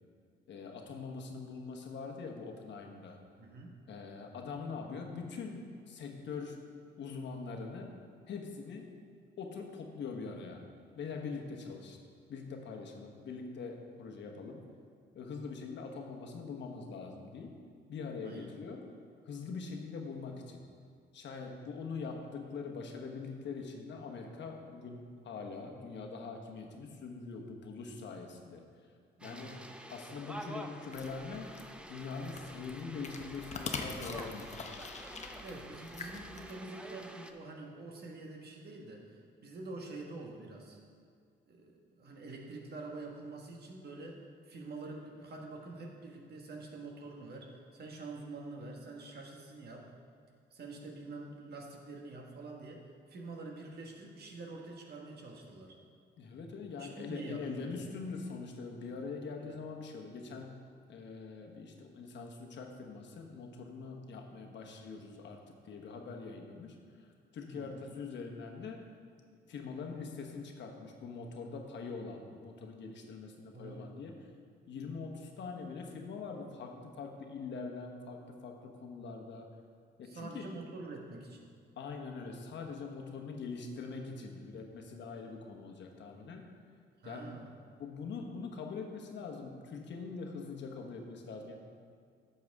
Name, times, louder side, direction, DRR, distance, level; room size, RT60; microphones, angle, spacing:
voice 1, 0.5-3.2 3.9-6.7 7.0-8.0 8.3-8.9 9.4-10.6 10.9-12.0 12.3-14.7 15.1-17.6 17.9-18.8 19.2-20.6 21.1-28.6 29.2-29.6 29.9-31.6 31.9-34.6 56.2-60.6 60.9-65.4 65.6-67.1 67.3-68.9 69.5-74.1 74.7-79.5 80.0-80.5 81.8-86.4 87.0-87.3 87.8-91.6, left 4 dB, 65° left, 2 dB, 1.2 m, -43 dB
voice 2, 3.4-3.8 18.2-18.5 29.2-29.5 35.4-40.8 41.5-49.9 50.5-55.8 56.8-57.9 59.4-59.6 67.5-67.7 73.5-73.9 80.0-81.5 87.0-87.5, right 3 dB, 55° right, 0 dB, 1.5 m, -46 dB
sound 1, 29.2-37.3, equal, 5° right, 0.6 m, -48 dB
sound 2, 30.9-36.5, left 4 dB, 35° left, 0.9 m, -44 dB
11.0 x 7.1 x 3.6 m, 2.2 s
cardioid pair, 90°, 20 cm